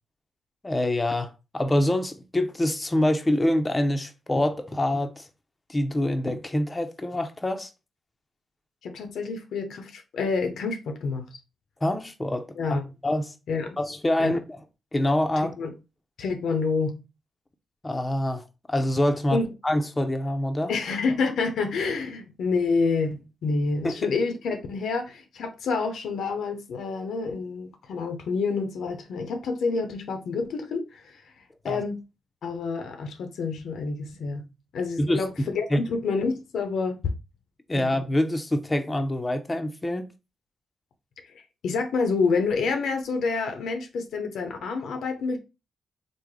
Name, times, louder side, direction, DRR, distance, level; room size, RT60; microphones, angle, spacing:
voice 1, 0.6-5.3 5.7-7.7 11.8-12.5 13.0-13.3 13.8-14.6 14.9-15.5 17.8-20.7 23.8-24.0 31.6-31.8 35.0-35.8 37.7-40.1, left 1 dB, 25° left, 0.5 m, -25 dB
voice 2, 8.8-11.3 12.6-12.8 13.5-13.8 14.2-14.4 15.4-15.7 16.2-17.0 19.3-19.5 20.7-31.2 31.6-32.0 32.4-34.5 34.7-37.0 37.7-37.9 41.6-45.4, left 4 dB, 75° left, 0.5 m, -28 dB
3.3 x 2.0 x 3.6 m
supercardioid pair, 50°, 0 cm